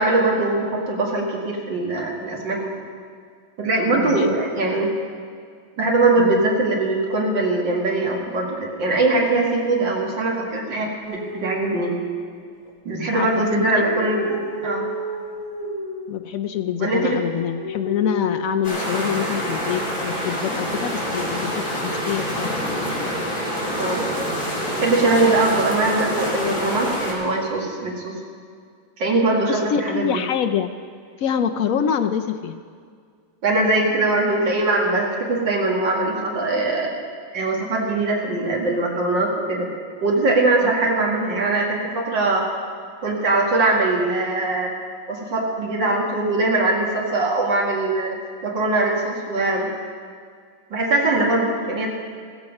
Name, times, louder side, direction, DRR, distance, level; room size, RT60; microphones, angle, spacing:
voice 1, 0.0-2.7 3.6-4.9 5.8-11.9 12.9-14.9 16.8-17.2 23.8-24.1 24.8-28.2 29.0-30.1 33.4-36.9 37.3-39.7 40.0-42.4 43.0-44.7 45.1-48.2 48.4-49.7 50.7-51.9, right 2 dB, 65° right, -1 dB, 2.8 m, -21 dB
voice 2, 3.9-4.4 6.2-6.4 13.1-13.8 16.1-22.9 29.4-30.7 31.2-32.6 40.6-40.7, left 8 dB, 80° left, 7 dB, 0.7 m, -26 dB
sound 1, 11.0-12.7 13.5-16.2 17.0-19.6 20.7-21.3, equal, 20° left, 2.1 m, -33 dB
sound 2, 18.6-27.1, equal, 45° left, 4.5 m, -26 dB
15.0 x 14.5 x 5.3 m, 2.1 s
omnidirectional pair, 2.1 m